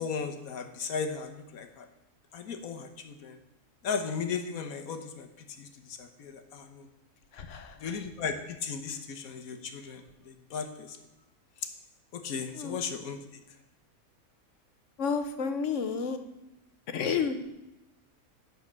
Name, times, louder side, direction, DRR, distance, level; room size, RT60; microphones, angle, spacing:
voice 1, 0.0-1.9 2.3-3.4 3.8-6.9 7.8-11.0 12.1-13.2, left 6 dB, 80° left, 8 dB, 1.4 m, -36 dB
voice 2, 7.3-7.8 12.5-12.8 15.0-16.2 16.9-17.5, left 6 dB, 60° left, 9 dB, 1.1 m, -31 dB
11.0 x 4.4 x 7.4 m, 0.94 s
omnidirectional pair, 1.5 m